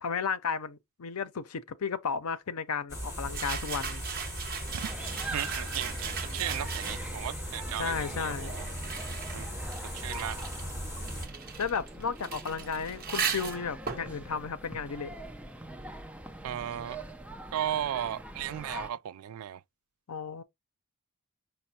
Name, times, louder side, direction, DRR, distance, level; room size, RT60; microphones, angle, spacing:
voice 1, 0.0-4.0 7.8-8.5 11.6-15.1 20.1-20.4, left 6 dB, 85° left, 0.6 m, -33 dB
sound 1, 2.9-11.3, equal, 15° left, 2.3 m, -38 dB
sound 2, 3.3-7.3 8.1-15.5, right 7 dB, 40° right, 0.9 m, -38 dB
sound 3, 4.7-18.9, right 1 dB, 5° right, 0.5 m, -44 dB
voice 2, 5.3-8.7 9.3-9.5 9.9-10.5 16.4-17.0 17.5-19.6, right 11 dB, 75° right, 0.3 m, -35 dB
5.2 x 2.1 x 4.1 m
head